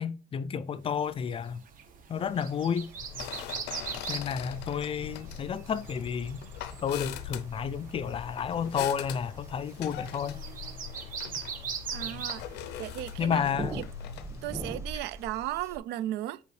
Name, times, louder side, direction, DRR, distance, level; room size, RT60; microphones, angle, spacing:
voice 1, 0.0-1.6 2.1-2.9 4.1-6.4 6.8-10.4 13.2-13.8, left 7 dB, 35° left, 0.4 m, -31 dB
sound 1, 1.0-13.4, right 6 dB, 55° right, 1.1 m, -42 dB
sound 2, 2.1-15.8, right 1 dB, 15° right, 1.1 m, -46 dB
sound 3, 3.0-14.7, left 9 dB, 80° left, 0.5 m, -42 dB
voice 2, 11.9-12.4 12.8-13.4 13.7-13.8 14.4-16.4, right 14 dB, 85° right, 0.4 m, -35 dB
6.8 x 4.6 x 3.1 m
cardioid pair, 110°, 17 cm